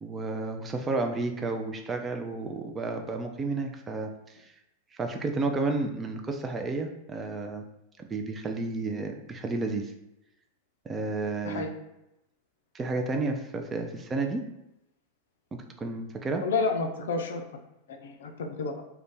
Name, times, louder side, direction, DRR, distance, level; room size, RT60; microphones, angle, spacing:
voice 1, 0.0-4.1 4.9-7.6 8.0-9.9 10.9-11.7 12.7-14.4 15.8-16.4, right 3 dB, 20° right, 4 dB, 0.3 m, -31 dB
voice 2, 16.4-17.4 18.0-18.7, left 4 dB, 60° left, 4 dB, 0.4 m, -30 dB
2.4 x 2.2 x 3.5 m, 0.88 s
figure-of-eight pair, 90°, 0 cm